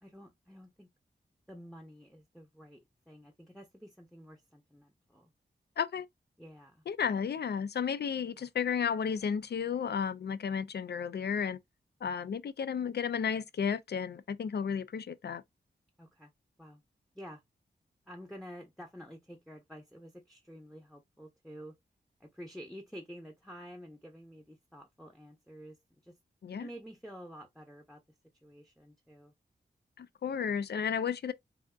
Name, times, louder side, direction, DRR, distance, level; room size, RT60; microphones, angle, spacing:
voice 1, 0.0-0.9 1.5-2.8 3.1-5.3 6.4-6.8 16.0-16.3 16.6-16.8 17.1-17.4 18.1-21.7 22.2-26.1 26.6-28.0 28.4-29.3, equal, ahead, 0.9 m, -50 dB
voice 2, 6.9-11.6 12.0-15.4 26.4-26.7 30.0-31.3, left 7 dB, 60° left, 0.4 m, -33 dB
3.4 x 2.6 x 2.4 m
cardioid pair, 40°, 19 cm